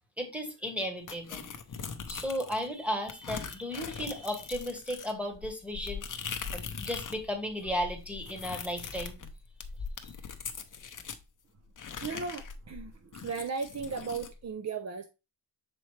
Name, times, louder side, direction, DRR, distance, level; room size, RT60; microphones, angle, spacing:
voice 1, 0.2-1.4 2.1-9.1, equal, 5° right, 1.1 m, -35 dB
sound 1, 1.1-2.7 3.1-7.2 7.5-11.2 11.8-14.3, left 6 dB, 45° left, 0.6 m, -41 dB
voice 2, 12.0-12.9 13.2-15.0, right 5 dB, 40° right, 0.4 m, -36 dB
6.9 x 4.3 x 3.1 m
wide cardioid pair, 175°, 45 cm